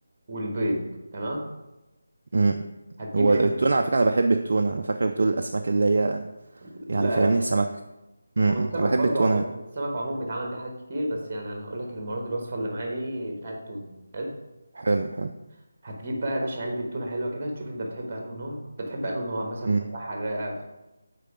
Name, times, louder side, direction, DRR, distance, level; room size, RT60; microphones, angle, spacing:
voice 1, 0.3-0.8 1.1-1.4 3.0-3.5 6.6-7.3 8.4-9.5 9.7-13.9 14.1-14.3 15.8-20.7, right 1 dB, 30° right, 1 dB, 1.4 m, -31 dB
voice 2, 2.3-2.6 3.1-6.3 6.9-7.7 8.4-9.4 14.7-15.3 19.6-19.9, right 3 dB, 50° right, 5 dB, 0.4 m, -23 dB
6.6 x 4.5 x 5.0 m, 0.99 s
figure-of-eight pair, 155°, 0 cm